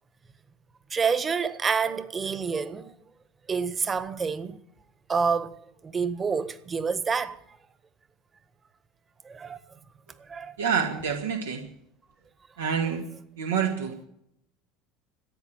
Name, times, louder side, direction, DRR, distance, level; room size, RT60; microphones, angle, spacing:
voice 1, 0.9-2.9 3.5-4.6 5.1-5.6 5.8-7.4 9.2-9.6 10.2-10.6, right 5 dB, 25° right, 1.5 m, -28 dB
voice 2, 10.6-11.6 12.6-13.0 13.4-13.9, right 7 dB, 85° right, 2.0 m, -27 dB
15.0 x 9.3 x 9.0 m
hypercardioid pair, 75°, 0 cm